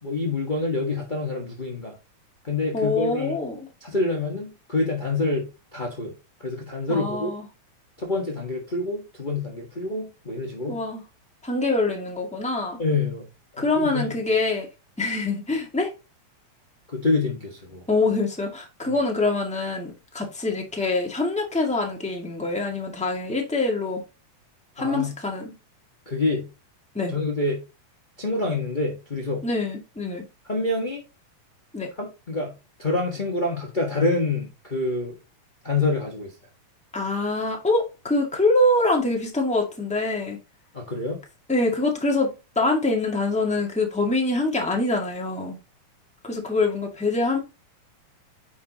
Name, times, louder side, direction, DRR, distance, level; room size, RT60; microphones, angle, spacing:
voice 1, 0.0-1.9 2.4-3.4 3.8-6.1 6.4-7.3 8.0-10.7 12.8-13.2 13.5-14.1 16.9-17.8 24.8-25.1 26.1-26.5 27.1-27.6 28.2-29.4 30.5-31.0 32.0-32.5 32.8-35.2 35.6-36.3 40.7-41.2, left 3 dB, 30° left, 0.8 m, -26 dB
voice 2, 2.7-3.7 6.9-7.5 10.7-11.0 11.4-12.8 13.6-14.7 15.0-15.9 17.9-24.0 24.8-25.5 26.9-27.2 29.4-30.2 31.7-31.9 36.9-40.4 41.5-45.6 46.2-47.4, left 2 dB, 5° left, 1.2 m, -24 dB
9.6 x 6.0 x 2.9 m
omnidirectional pair, 3.5 m